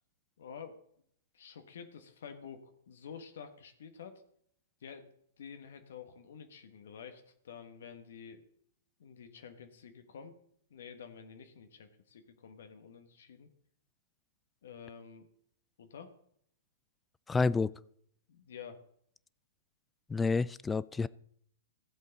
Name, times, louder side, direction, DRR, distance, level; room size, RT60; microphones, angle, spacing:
voice 1, 0.4-0.8 1.3-4.2 4.8-5.1 5.4-8.4 9.0-10.4 10.7-13.5 14.6-15.3 15.8-16.1 18.3-18.8, left 7 dB, 65° left, 7 dB, 1.3 m, -49 dB
voice 2, 17.3-17.7 20.1-21.1, left 4 dB, 10° left, 20 dB, 0.3 m, -29 dB
15.0 x 7.8 x 4.1 m, 0.68 s
figure-of-eight pair, 110°, 0 cm